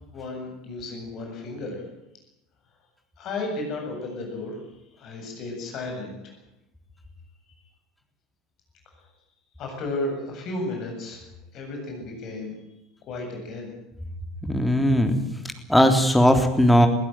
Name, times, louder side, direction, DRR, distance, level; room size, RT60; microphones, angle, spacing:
voice 1, 0.1-1.8 3.2-4.6 5.0-6.1 9.6-11.2 11.5-12.5 13.1-13.7, left 2 dB, 45° left, 2 dB, 7.9 m, -33 dB
voice 2, 14.4-15.2 15.7-16.9, equal, 5° left, 5 dB, 3.5 m, -18 dB
22.5 x 16.0 x 9.2 m, 0.89 s
figure-of-eight pair, 75°, 0 cm